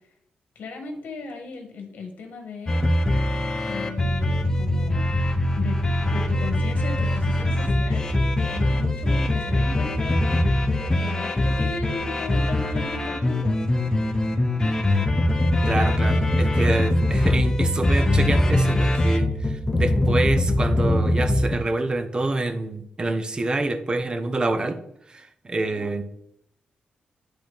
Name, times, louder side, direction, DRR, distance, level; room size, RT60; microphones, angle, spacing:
voice 1, 0.5-2.9 3.6-5.1 5.5-10.2 10.6-13.6 25.6-25.8, left 3 dB, 80° left, 4 dB, 1.6 m, -36 dB
sound 1, 2.7-21.6, left 1 dB, 20° left, 0.8 m, -22 dB
voice 2, 15.6-24.8 25.1-26.0, right 2 dB, 30° right, 8 dB, 0.8 m, -27 dB
10.5 x 3.9 x 3.5 m, 0.71 s
cardioid pair, 115°, 3 cm